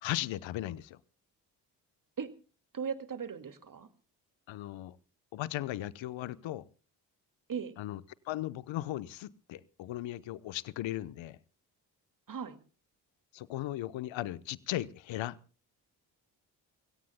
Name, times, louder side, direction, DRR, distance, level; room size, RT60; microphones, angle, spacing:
voice 1, 0.0-1.0 4.5-5.0 5.3-6.6 7.8-11.4 13.3-15.4, left 14 dB, 65° left, 1.0 m, -37 dB
voice 2, 2.7-3.9 7.5-7.7 12.3-12.6, right 7 dB, 40° right, 2.2 m, -37 dB
30.0 x 17.0 x 2.2 m
hypercardioid pair, 45°, 49 cm